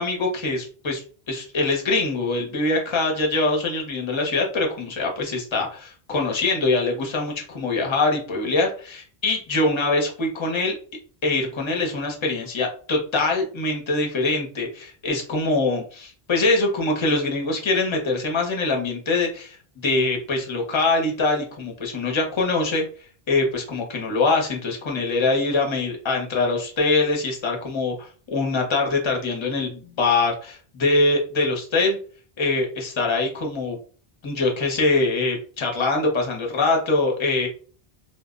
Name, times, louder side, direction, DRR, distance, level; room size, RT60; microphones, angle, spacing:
voice 1, 0.0-10.8 11.2-19.6 19.8-22.9 23.3-32.0 32.4-33.8 34.2-37.5, left 3 dB, 35° left, 1 dB, 0.6 m, -23 dB
2.0 x 2.0 x 3.6 m, 0.42 s
omnidirectional pair, 1.1 m